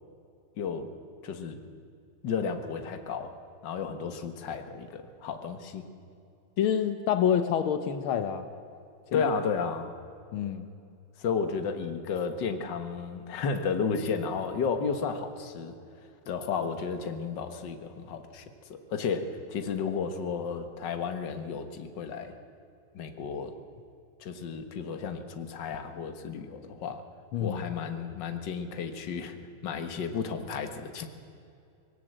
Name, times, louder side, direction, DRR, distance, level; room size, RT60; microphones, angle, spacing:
voice 1, 0.6-0.9 1.2-1.6 2.2-3.3 3.6-5.9 9.1-9.9 11.2-15.7 16.3-18.4 18.7-22.3 22.9-23.6 24.2-27.0 27.4-29.4 29.6-31.1, left 5 dB, 60° left, 8 dB, 1.9 m, -33 dB
voice 2, 6.6-8.5 9.1-9.2 10.3-10.7 27.3-27.6, left 8 dB, 85° left, 10 dB, 1.8 m, -27 dB
20.5 x 17.0 x 7.9 m, 2.5 s
omnidirectional pair, 2.2 m